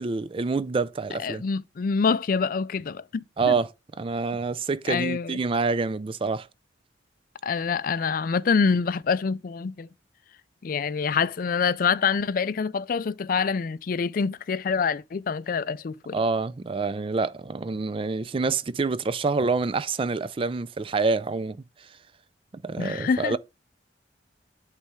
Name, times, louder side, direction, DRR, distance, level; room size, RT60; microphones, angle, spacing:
voice 1, 0.0-1.4 3.4-3.7 4.0-6.5 16.1-21.9 22.6-23.4, right 4 dB, 30° right, 0.3 m, -27 dB
voice 2, 1.2-3.5 4.9-5.4 7.4-9.9 10.6-16.2 22.8-23.4, left 5 dB, 50° left, 0.4 m, -26 dB
8.2 x 3.3 x 4.9 m
head